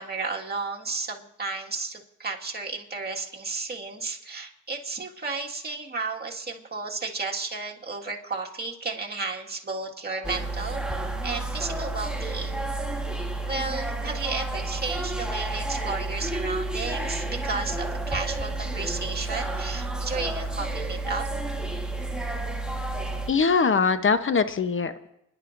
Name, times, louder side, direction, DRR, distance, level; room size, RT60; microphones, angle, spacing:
voice 1, 0.0-10.8 11.2-12.6 13.4-21.3, right 4 dB, 30° right, -1 dB, 1.9 m, -33 dB
sound 1, 10.2-23.3, right 2 dB, 5° right, 1.3 m, -30 dB
voice 2, 23.3-25.1, left 5 dB, 40° left, 11 dB, 0.9 m, -22 dB
29.0 x 11.0 x 2.6 m, 0.80 s
cardioid pair, 60°, 31 cm